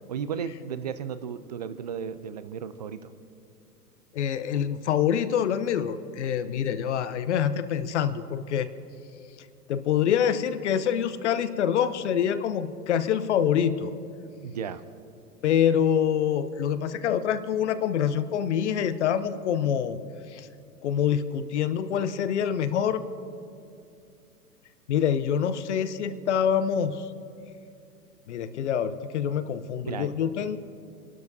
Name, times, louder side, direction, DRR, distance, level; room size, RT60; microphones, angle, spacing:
voice 1, 0.1-3.1 14.4-14.8 29.8-30.1, right 7 dB, 30° right, 13 dB, 0.4 m, -34 dB
voice 2, 4.1-8.7 9.7-13.9 15.4-20.0 20.3-20.5 20.8-23.0 24.9-27.1 28.3-30.6, left 8 dB, 50° left, 12 dB, 0.8 m, -26 dB
29.0 x 12.0 x 2.7 m, 2.5 s
figure-of-eight pair, 105°, 46 cm